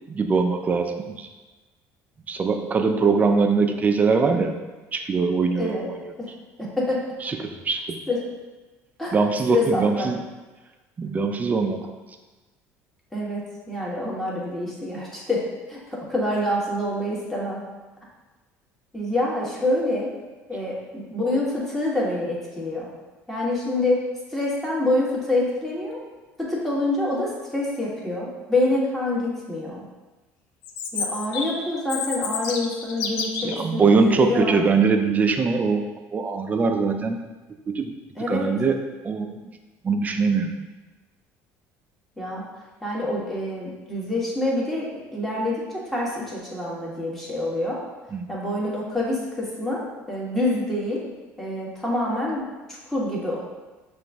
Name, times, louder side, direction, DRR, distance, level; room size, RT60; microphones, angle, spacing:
voice 1, 0.1-1.3 2.3-4.6 4.9-6.0 7.2-7.4 7.6-8.0 9.1-10.2 11.0-11.9 33.4-35.8 36.1-37.2 37.7-37.9 38.3-38.8 39.0-39.3 39.8-40.5 48.1-48.3, right 4 dB, 25° right, 5 dB, 0.5 m, -22 dB
voice 2, 5.6-5.9 6.2-6.3 6.6-7.0 8.1-8.2 9.0-9.2 9.5-10.1 13.1-17.6 18.9-20.1 20.5-22.9 23.3-26.0 26.4-29.8 30.9-34.6 38.2-38.5 42.2-42.5 42.8-47.8 48.3-51.0 51.4-53.4, left 1 dB, 5° left, -5 dB, 1.3 m, -26 dB
Chirp tweet, 30.6-33.6, left 6 dB, 80° left, 0.5 m, -30 dB
5.8 x 2.6 x 3.5 m, 1.2 s
supercardioid pair, 105°, 6 cm